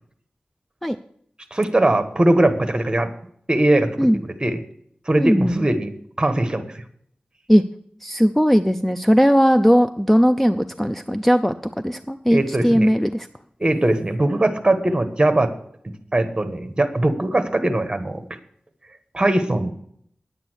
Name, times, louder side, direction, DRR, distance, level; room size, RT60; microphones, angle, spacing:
voice 1, 1.5-3.1 3.5-4.6 5.1-5.9 6.2-6.8 12.3-12.9 13.6-15.5 16.1-18.2 19.1-19.7, right 1 dB, 25° right, 8 dB, 1.3 m, -20 dB
voice 2, 5.2-5.6 7.5-7.6 8.0-11.5 11.8-13.3, equal, 5° left, 9 dB, 0.4 m, -18 dB
9.8 x 8.6 x 6.3 m, 0.67 s
wide cardioid pair, 85°, 3 cm